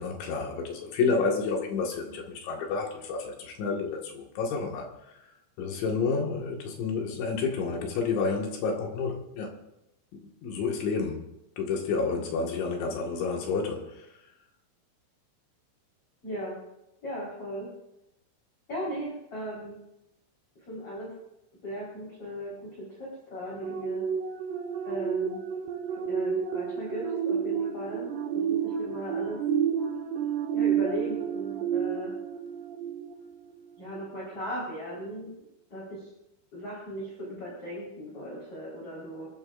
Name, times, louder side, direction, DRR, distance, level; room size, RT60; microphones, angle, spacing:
voice 1, 0.0-4.9 5.6-9.5 10.2-11.3 11.6-14.0, left 4 dB, 65° left, 1 dB, 4.0 m, -30 dB
voice 2, 16.2-16.6 17.0-17.7 18.7-19.8 20.7-21.1 21.6-24.1 24.8-25.4 25.9-28.1 28.3-29.4 30.5-32.1 33.8-35.3 35.7-36.1 36.5-39.3, equal, 30° left, -6 dB, 4.9 m, -37 dB
sound 1, 23.6-33.5 34.0-34.2, right 8 dB, 70° right, 2.9 m, -30 dB
27.0 x 13.5 x 2.6 m, 0.86 s
omnidirectional pair, 5.9 m